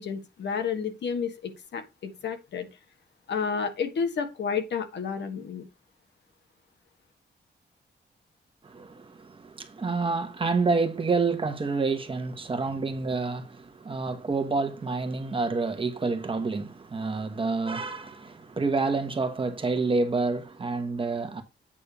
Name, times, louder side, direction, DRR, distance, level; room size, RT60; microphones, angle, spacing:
voice 1, 0.0-2.7 3.3-5.6, left 6 dB, 80° left, 1.5 m, -31 dB
voice 2, 8.6-21.4, right 4 dB, 30° right, 1.1 m, -28 dB
8.6 x 3.3 x 6.6 m
wide cardioid pair, 175°, 18 cm